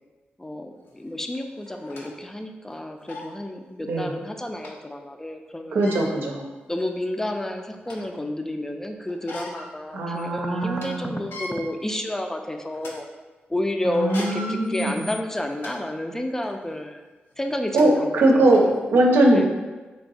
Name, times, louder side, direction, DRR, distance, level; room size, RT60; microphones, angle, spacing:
voice 1, 0.4-6.0 6.7-13.0 13.5-17.0 17.4-18.8 19.3-19.5, left 1 dB, 10° left, 5 dB, 0.4 m, -30 dB
sound 1, 0.9-1.0 1.6-2.1 2.7-2.8 3.1-3.3 4.6-4.7 5.7-6.1 6.9-7.0 7.4-8.1 9.1-9.7 10.1-10.2 10.6-10.9 11.2-11.5 12.1-12.3 12.7-12.9 13.9-15.7 16.3-16.5 17.4-17.5 17.8-17.9 18.5-18.6, left 2 dB, 90° left, 0.7 m, -38 dB
voice 2, 5.7-6.4 9.9-11.1 13.8-15.0 17.7-18.6 18.9-19.5, right 1 dB, 80° right, 0 dB, 0.6 m, -20 dB
3.4 x 2.7 x 4.0 m, 1.2 s
cardioid pair, 80°, 4 cm